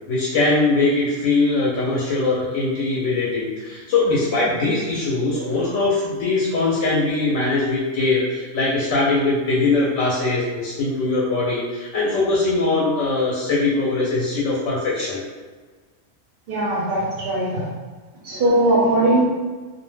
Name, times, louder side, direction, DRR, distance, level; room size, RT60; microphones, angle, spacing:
voice 1, 0.1-15.2, left 3 dB, 75° left, -4 dB, 0.9 m, -21 dB
voice 2, 5.3-5.6 16.5-17.7 18.2-19.2, right 1 dB, 60° right, -4 dB, 0.6 m, -20 dB
2.3 x 2.1 x 3.1 m, 1.4 s
omnidirectional pair, 1.3 m